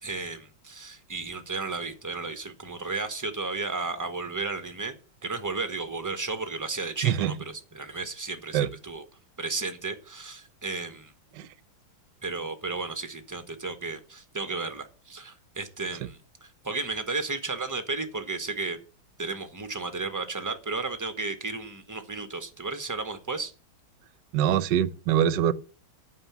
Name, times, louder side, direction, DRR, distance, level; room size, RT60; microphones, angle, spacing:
voice 1, 0.0-4.9 5.2-9.0 9.4-11.1 12.2-18.8 19.2-23.5, right 3 dB, 15° right, 0.7 m, -33 dB
voice 2, 7.0-7.3 8.5-8.7 11.4-11.5 24.3-25.5, right 10 dB, 70° right, 1.2 m, -23 dB
9.2 x 5.6 x 7.0 m
omnidirectional pair, 2.2 m